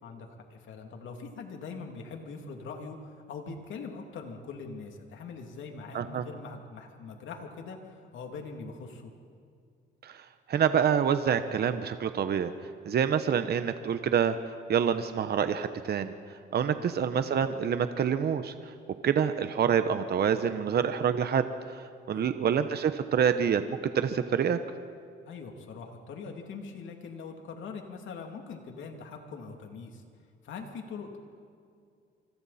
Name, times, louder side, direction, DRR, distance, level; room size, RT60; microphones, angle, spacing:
voice 1, 0.0-7.8 8.1-9.1 16.6-16.8 22.1-22.4 25.2-30.0 30.4-31.2, left 4 dB, 75° left, 3 dB, 2.9 m, -42 dB
voice 2, 10.5-12.5 12.9-14.4 14.7-16.1 16.5-18.5 19.0-21.4 21.7-21.8 22.1-24.6, right 8 dB, 55° right, 10 dB, 1.0 m, -26 dB
27.0 x 25.5 x 4.3 m, 2.3 s
cardioid pair, 90°, 20 cm